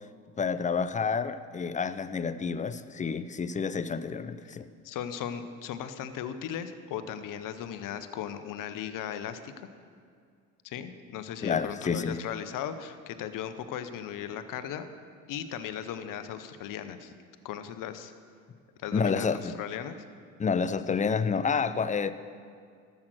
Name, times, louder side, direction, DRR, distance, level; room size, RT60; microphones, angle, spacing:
voice 1, 0.4-4.7 11.4-12.2 18.9-19.6 20.4-22.1, left 5 dB, 20° left, 13 dB, 0.5 m, -29 dB
voice 2, 4.8-9.5 10.6-14.9 15.3-17.1 17.4-18.1 18.8-20.0, left 9 dB, 55° left, 10 dB, 1.0 m, -37 dB
12.0 x 7.8 x 6.2 m, 2.2 s
hypercardioid pair, 75°, 38 cm